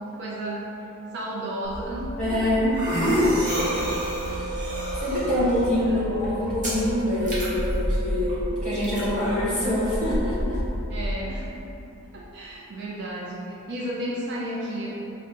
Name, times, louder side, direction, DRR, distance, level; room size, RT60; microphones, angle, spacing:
voice 1, 0.2-2.7 5.9-6.0 10.9-11.6 12.1-14.9, right 1 dB, 50° right, -4 dB, 0.4 m, -33 dB
sound 1, 1.6-11.1, equal, 35° right, 0.9 m, -29 dB
voice 2, 2.2-3.5 4.3-4.6 5.0-10.6, left 1 dB, 5° left, -11 dB, 1.3 m, -25 dB
sound 2, 3.4-10.7, right 4 dB, 45° left, 0.5 m, -37 dB
4.9 x 2.1 x 4.0 m, 3.0 s
head